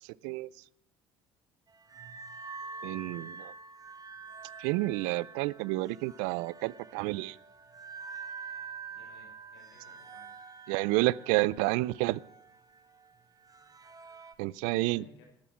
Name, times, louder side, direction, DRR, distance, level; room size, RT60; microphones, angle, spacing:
sound 1, 1.7-14.3, right 5 dB, 25° right, 1.5 m, -47 dB
voice 1, 2.8-3.5 4.6-7.4 10.7-12.2 14.4-15.0, right 20 dB, 75° right, 24 dB, 0.4 m, -30 dB
voice 2, 8.9-10.4 14.6-15.2, left 4 dB, 80° left, 1 dB, 5.5 m, -58 dB
11.5 x 10.5 x 6.1 m, 0.76 s
hypercardioid pair, 65°, 14 cm